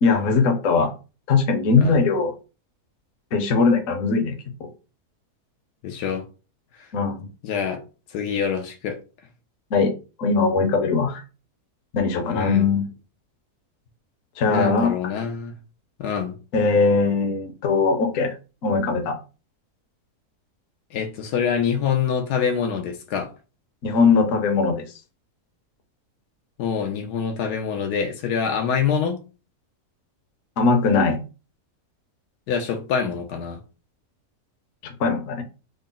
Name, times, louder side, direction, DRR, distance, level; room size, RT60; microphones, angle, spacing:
voice 1, 0.0-0.9 1.3-2.3 3.3-4.7 6.9-7.3 9.7-9.9 10.2-11.2 11.9-12.8 14.4-14.9 16.5-18.3 18.6-19.2 23.8-24.8 30.6-31.2 35.0-35.4, left 4 dB, 60° left, 1.0 m, -20 dB
voice 2, 5.8-6.2 6.8-6.9 7.4-7.8 8.1-9.0 12.3-12.7 14.5-15.5 16.0-16.4 20.9-23.3 26.6-29.2 32.5-33.6, left 7 dB, 80° left, 1.2 m, -25 dB
3.8 x 2.0 x 3.7 m
omnidirectional pair, 1.7 m